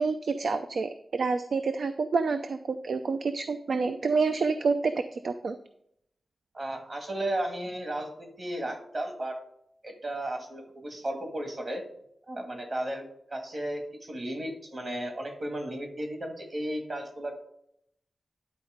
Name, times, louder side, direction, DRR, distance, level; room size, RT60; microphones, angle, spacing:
voice 1, 0.0-5.6, right 4 dB, 70° right, 9 dB, 0.4 m, -28 dB
voice 2, 6.5-9.4 9.8-11.8 12.3-13.0 13.3-17.3, right 1 dB, 45° right, 3 dB, 1.8 m, -34 dB
10.5 x 4.2 x 5.0 m, 0.74 s
wide cardioid pair, 125°, 0 cm